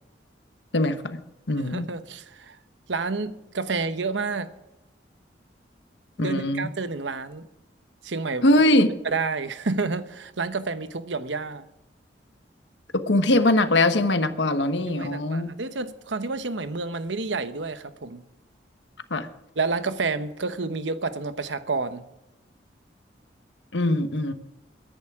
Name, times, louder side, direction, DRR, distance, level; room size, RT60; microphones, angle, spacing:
voice 1, 0.7-1.2 1.5-1.9 6.2-6.7 8.4-8.9 12.9-15.5 19.1-19.3 23.7-24.3, left 1 dB, 80° left, 9 dB, 1.2 m, -21 dB
voice 2, 1.7-2.6 2.9-4.5 6.2-7.5 8.0-8.5 9.0-11.7 14.9-18.2 19.6-22.1, right 4 dB, 90° right, 11 dB, 1.0 m, -29 dB
23.0 x 10.5 x 3.7 m, 0.93 s
head